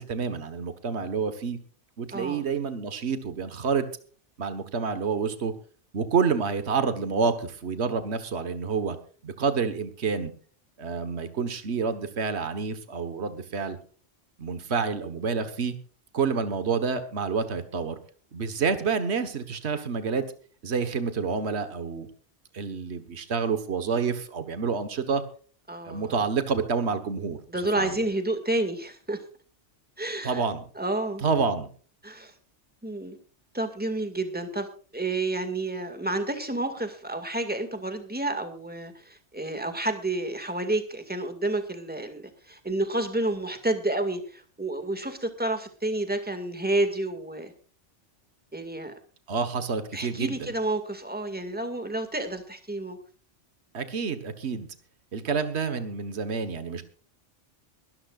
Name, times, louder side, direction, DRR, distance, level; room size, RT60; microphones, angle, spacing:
voice 1, 0.0-1.6 2.0-3.9 4.4-5.5 5.9-9.0 9.2-10.3 10.8-13.8 14.4-15.7 16.1-18.0 18.3-20.3 20.6-22.1 22.5-25.2 25.8-27.4 27.7-27.9 30.2-30.6 31.2-31.7 49.3-50.5 53.7-54.7 55.1-56.8, right 5 dB, 65° right, 10 dB, 1.6 m, -28 dB
voice 2, 2.1-2.4 25.7-26.2 27.5-29.2 30.0-30.4 30.8-31.2 32.0-32.3 32.8-33.2 33.5-34.7 34.9-47.5 48.5-48.9 49.9-53.0, right 2 dB, 10° right, 7 dB, 2.1 m, -30 dB
22.5 x 12.5 x 2.5 m, 0.42 s
omnidirectional pair, 1.2 m